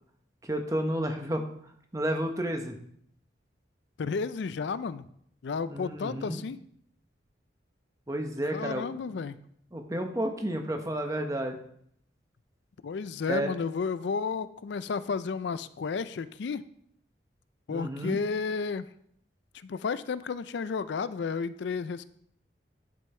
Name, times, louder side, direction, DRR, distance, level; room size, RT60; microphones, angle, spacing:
voice 1, 0.4-1.4 1.9-2.7 5.7-6.4 8.1-9.2 9.7-11.6 13.3-13.5 17.7-18.2, right 1 dB, 20° right, 4 dB, 0.9 m, -31 dB
voice 2, 4.0-5.0 5.4-6.6 8.5-9.4 12.8-16.6 17.7-18.9 19.6-22.0, left 5 dB, 70° left, 14 dB, 0.4 m, -32 dB
10.5 x 5.4 x 4.4 m, 0.68 s
head